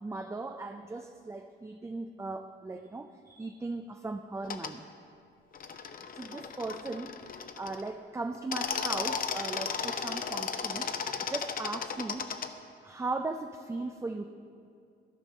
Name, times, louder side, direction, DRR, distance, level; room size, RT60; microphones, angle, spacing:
voice 1, 0.0-4.9 6.1-12.3 12.8-14.3, right 3 dB, 15° right, 6 dB, 0.4 m, -38 dB
sound 1, 4.4-4.7 5.5-7.9 8.3-12.5, left 6 dB, 45° left, 0.6 m, -35 dB
13.5 x 5.2 x 6.2 m, 2.5 s
cardioid pair, 90°, 20 cm